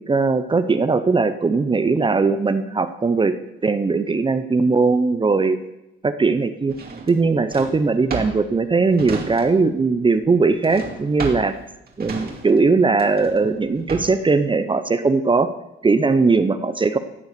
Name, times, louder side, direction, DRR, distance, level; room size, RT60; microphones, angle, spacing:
voice 1, 0.1-3.3 3.6-5.6 6.0-6.7 7.1-11.5 12.0-15.5 15.8-17.0, right 4 dB, 25° right, 10 dB, 0.8 m, -19 dB
Drawer open or close, 6.7-9.8 10.1-14.3, right 4 dB, 50° right, 2.5 m, -33 dB
15.0 x 8.0 x 6.8 m, 0.90 s
cardioid pair, 90°, 20 cm